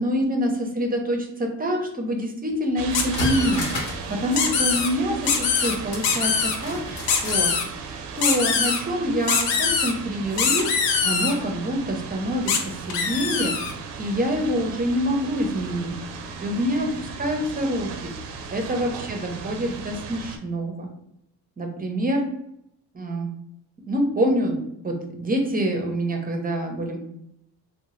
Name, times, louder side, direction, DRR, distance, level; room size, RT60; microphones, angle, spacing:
voice 1, 0.0-3.6 4.1-7.5 8.1-10.7 11.0-13.5 14.0-15.9 16.4-18.1 18.5-20.9 21.6-22.3 22.9-23.3 23.9-24.6 24.8-27.0, equal, 20° right, 2 dB, 0.6 m, -26 dB
sound 1, 2.5-2.6 2.9-4.1 4.4-4.5 5.6-7.5 7.9-8.0, left 2 dB, 65° left, 1.0 m, -32 dB
sound 2, 2.8-20.4, right 5 dB, 80° right, 0.6 m, -36 dB
sound 3, 2.9-3.6 4.3-4.9 5.3-5.8 6.0-6.6 7.1-7.6 8.2-8.8 9.3-9.9 10.4-11.3 12.5-12.6 12.9-13.7, left 6 dB, 90° left, 0.6 m, -23 dB
2.7 x 2.1 x 3.1 m, 0.78 s
cardioid pair, 90°, 42 cm